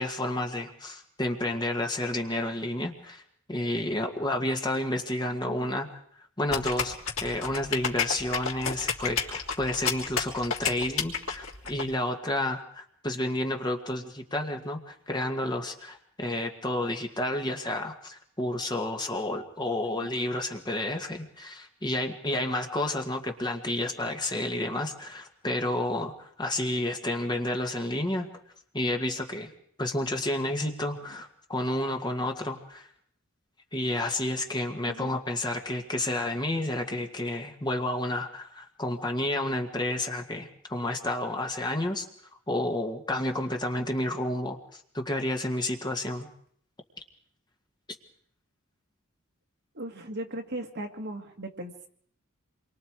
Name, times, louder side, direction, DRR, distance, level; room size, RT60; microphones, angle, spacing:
voice 1, 0.0-3.2 3.5-5.9 6.4-6.9 7.2-28.3 28.7-29.5 29.8-32.9 33.7-42.1 42.5-46.3, left 1 dB, 20° left, 4 dB, 1.9 m, -30 dB
sound 1, 6.5-11.8, left 6 dB, 75° left, 3.4 m, -30 dB
voice 2, 49.7-51.9, right 1 dB, 55° right, 3 dB, 2.2 m, -37 dB
27.5 x 23.5 x 4.8 m, 0.62 s
head